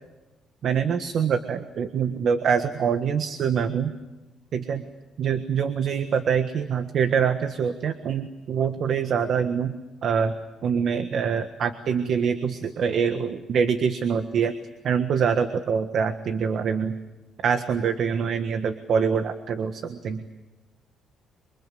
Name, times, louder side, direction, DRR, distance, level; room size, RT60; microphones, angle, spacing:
voice 1, 0.6-3.9 4.5-4.8 5.2-9.8 10.0-10.4 10.6-14.5 14.8-17.0 17.4-20.2, right 7 dB, 60° right, 8 dB, 1.5 m, -25 dB
27.5 x 24.5 x 7.8 m, 1.1 s
cardioid pair, 120°, 0 cm